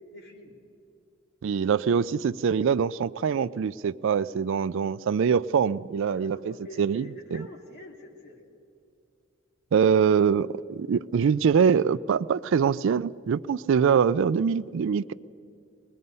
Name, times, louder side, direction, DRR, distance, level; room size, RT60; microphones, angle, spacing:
voice 1, 0.1-0.6 6.1-8.5, left 1 dB, 55° left, 2.8 m, -46 dB
voice 2, 1.4-7.5 9.7-15.1, right 6 dB, 65° right, 0.4 m, -24 dB
24.0 x 20.0 x 5.4 m
head